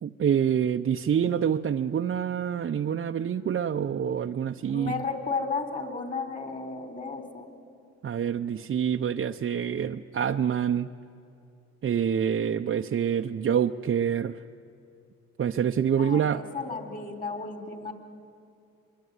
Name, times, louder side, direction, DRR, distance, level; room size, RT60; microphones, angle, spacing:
voice 1, 0.0-5.0 8.0-10.9 11.8-14.4 15.4-16.4, right 8 dB, 40° right, 4 dB, 0.7 m, -26 dB
voice 2, 4.7-7.6 16.0-17.9, left 4 dB, 30° left, 6 dB, 3.7 m, -33 dB
24.0 x 23.5 x 9.6 m, 2.5 s
cardioid pair, 90°, 30 cm